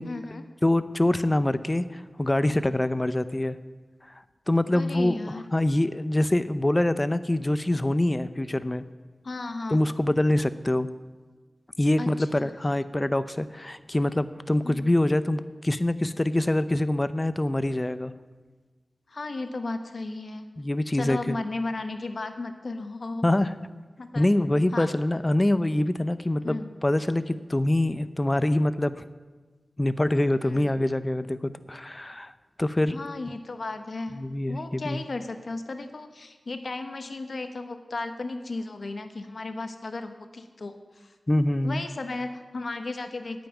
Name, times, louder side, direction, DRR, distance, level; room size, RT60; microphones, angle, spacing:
voice 1, 0.0-0.4 4.7-5.4 9.2-9.8 12.0-12.5 14.6-14.8 19.1-20.5 20.9-23.2 24.0-24.2 24.7-24.9 26.4-26.7 30.4-30.7 32.9-34.2 34.5-41.1 41.6-43.5, left 3 dB, 70° left, 8 dB, 0.9 m, -35 dB
voice 2, 0.6-3.6 4.5-5.2 5.5-8.8 9.7-10.9 11.8-18.1 20.6-21.4 23.2-23.5 24.1-29.0 29.8-32.3 32.6-33.0 34.1-35.0 41.3-41.8, left 1 dB, 25° left, 13 dB, 0.6 m, -25 dB
9.1 x 7.0 x 8.9 m, 1.4 s
cardioid pair, 50°, 0 cm